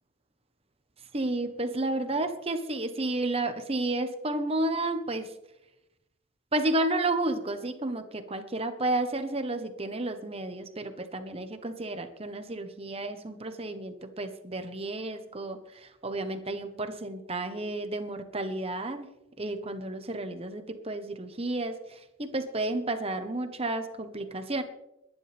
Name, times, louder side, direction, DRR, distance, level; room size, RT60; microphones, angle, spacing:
voice 1, 1.1-5.3 6.5-19.1 19.4-24.6, right 2 dB, 30° right, 8 dB, 1.1 m, -31 dB
22.0 x 10.5 x 3.5 m, 0.89 s
head